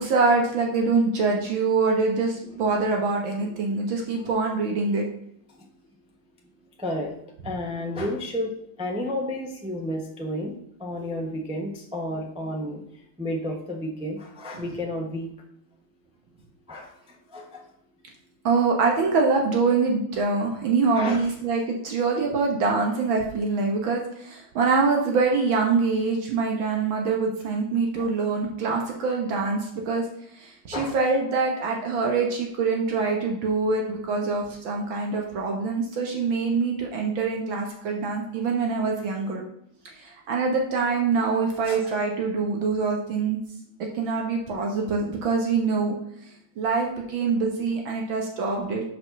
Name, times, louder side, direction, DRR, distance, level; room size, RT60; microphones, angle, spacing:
voice 1, 0.0-5.0 7.4-7.5 10.3-10.4 10.9-11.1 14.5-14.8 18.4-30.0 30.4-39.4 40.0-43.4 43.8-46.0 46.6-48.8, right 4 dB, 70° right, 1 dB, 1.9 m, -24 dB
voice 2, 3.4-3.8 5.5-5.7 6.8-7.1 7.4-8.5 8.8-10.5 10.8-15.3 16.7-17.7 20.9-21.2 28.0-28.1 30.7-31.0 41.7-41.8, left 1 dB, 5° right, 0 dB, 0.6 m, -32 dB
6.9 x 5.2 x 5.8 m, 0.73 s
omnidirectional pair, 2.3 m